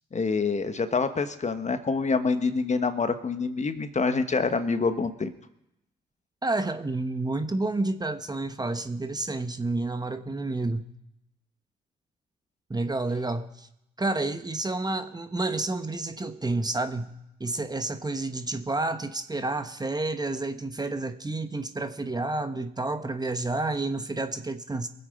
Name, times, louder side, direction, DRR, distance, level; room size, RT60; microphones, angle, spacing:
voice 1, 0.1-5.3, left 4 dB, 35° left, 9 dB, 1.3 m, -26 dB
voice 2, 6.4-10.9 12.7-13.7 14.0-24.9, right 2 dB, 20° right, 9 dB, 1.2 m, -30 dB
23.0 x 8.0 x 5.3 m, 0.84 s
hypercardioid pair, 45°, 20 cm